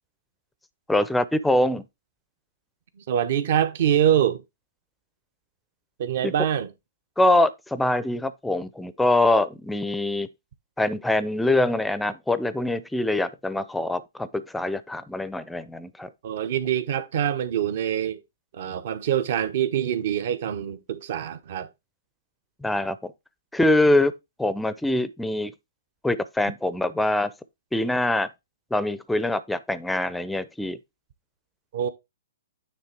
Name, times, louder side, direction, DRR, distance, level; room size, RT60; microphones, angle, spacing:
voice 1, 0.9-1.8 6.2-6.3 7.2-10.3 10.8-16.1 22.6-23.0 23.5-24.1 24.4-25.5 26.0-27.3 27.7-28.3 28.7-30.8, left 1 dB, 5° left, 0.6 m, -24 dB
voice 2, 3.0-4.4 6.0-6.7 16.2-18.2 18.5-21.7 31.7-31.9, right 10 dB, 55° right, 1.0 m, -24 dB
9.5 x 3.3 x 4.5 m
hypercardioid pair, 130°, 0 cm